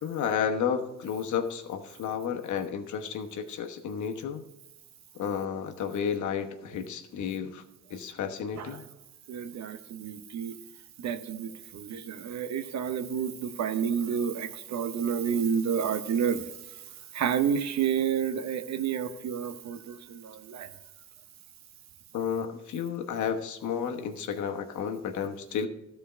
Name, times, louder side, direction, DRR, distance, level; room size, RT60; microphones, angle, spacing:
voice 1, 0.0-4.4 5.1-7.6 7.9-8.8 22.1-25.7, left 7 dB, 75° left, 5 dB, 1.1 m, -32 dB
voice 2, 9.3-10.6 11.0-16.5 17.1-20.7, right 7 dB, 65° right, 10 dB, 0.9 m, -30 dB
13.0 x 4.5 x 5.6 m, 0.97 s
cardioid pair, 90°, 30 cm